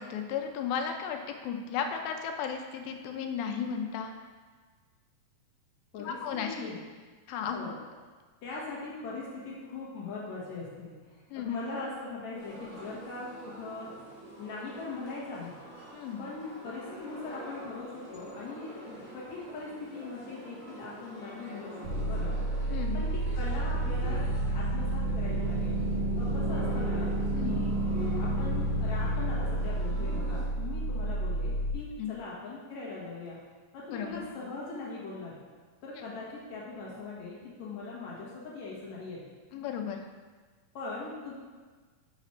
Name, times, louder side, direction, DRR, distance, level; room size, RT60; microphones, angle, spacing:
voice 1, 0.0-4.1 6.0-6.6 7.3-7.7 11.3-11.5 15.9-16.3 22.7-23.0 27.3-27.6 32.0-32.1 33.9-34.3 39.5-40.1, left 7 dB, 85° left, 4 dB, 2.5 m, -34 dB
voice 2, 6.4-6.8 7.5-7.7 8.4-14.0 14.4-15.6 16.2-22.4 22.9-24.3 24.5-25.8 26.2-27.1 27.4-27.7 28.2-33.4 33.7-35.4 35.8-39.2 40.7-41.3, left 3 dB, 60° left, -6 dB, 2.4 m, -40 dB
sound 1, 12.3-30.4, right 1 dB, 15° right, 0.6 m, -46 dB
sound 2, 21.8-31.7, right 1 dB, 85° right, 2.5 m, -30 dB
6.2 x 4.9 x 4.3 m, 1.4 s
omnidirectional pair, 4.1 m